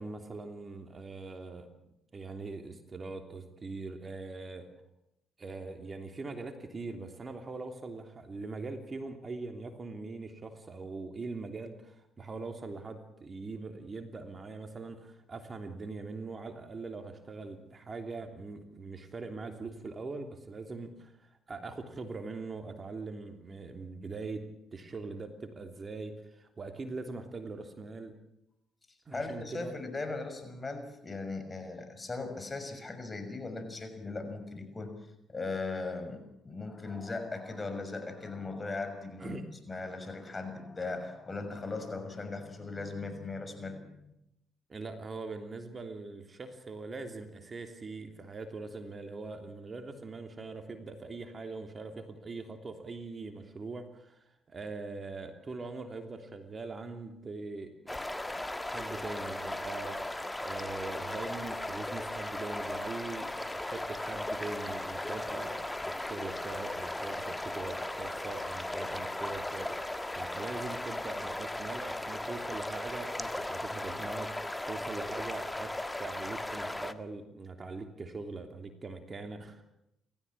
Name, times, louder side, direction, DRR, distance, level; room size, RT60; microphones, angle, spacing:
voice 1, 0.0-1.7 2.1-4.7 5.4-24.5 24.7-28.1 29.1-29.7 39.2-39.4 44.7-58.0 58.3-75.7 76.0-79.6, right 3 dB, 40° right, 6 dB, 3.1 m, -42 dB
voice 2, 29.1-34.9 35.3-39.4 39.7-44.1, left 3 dB, 30° left, 7 dB, 6.2 m, -38 dB
sound 1, 57.9-76.9, left 1 dB, 15° left, 1.6 m, -37 dB
29.0 x 14.5 x 8.6 m, 0.83 s
hypercardioid pair, 55°, 0 cm